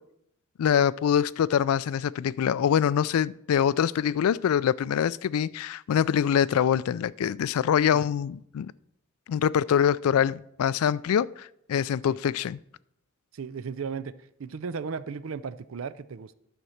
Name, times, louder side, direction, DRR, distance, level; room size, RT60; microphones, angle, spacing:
voice 1, 0.6-8.7 9.3-12.6, left 8 dB, 85° left, 0.3 m, -24 dB
voice 2, 13.3-14.1 14.4-16.3, right 5 dB, 70° right, 0.4 m, -35 dB
11.0 x 4.4 x 6.4 m
head